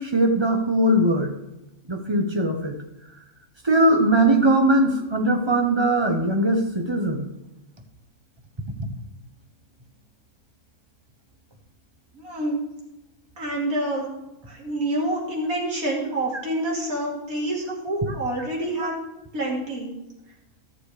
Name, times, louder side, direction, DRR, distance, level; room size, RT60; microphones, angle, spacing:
voice 1, 0.0-1.3 1.9-2.8 3.6-7.3 8.8-8.9, right 1 dB, 20° right, 3 dB, 1.0 m, -20 dB
voice 2, 12.1-12.6 13.4-14.1 14.5-18.9 19.3-19.9, right 1 dB, 70° right, -3 dB, 3.1 m, -27 dB
13.5 x 6.8 x 4.9 m, 0.95 s
omnidirectional pair, 1.5 m